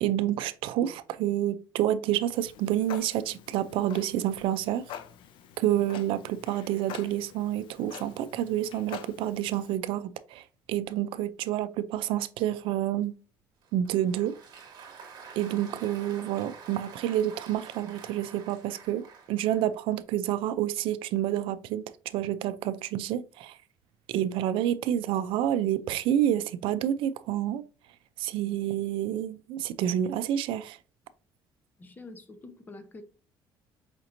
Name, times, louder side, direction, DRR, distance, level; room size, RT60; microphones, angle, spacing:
voice 1, 0.0-4.8 5.6-10.4 10.7-13.1 13.7-14.3 15.4-23.6 24.1-27.6 28.2-30.8, right 11 dB, 75° right, 0.4 m, -28 dB
Clock, 2.3-9.8, left 9 dB, 65° left, 0.4 m, -46 dB
Applause, 13.6-19.8, right 6 dB, 50° right, 1.1 m, -48 dB
voice 2, 31.8-33.0, left 2 dB, 20° left, 0.7 m, -46 dB
5.0 x 2.9 x 2.5 m
cardioid pair, 130°, 9 cm